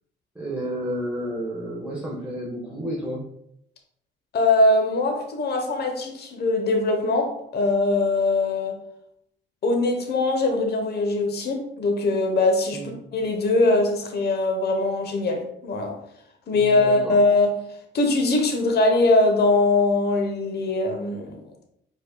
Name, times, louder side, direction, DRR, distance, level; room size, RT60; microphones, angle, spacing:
voice 1, 0.3-3.2 12.7-12.9 16.5-17.2, equal, 5° right, -6 dB, 1.2 m, -31 dB
voice 2, 4.3-8.8 9.6-12.8 13.1-16.0 16.5-17.5 17.9-21.4, left 2 dB, 55° left, 3 dB, 0.9 m, -21 dB
5.0 x 4.1 x 2.2 m, 0.75 s
cardioid pair, 90°, 20 cm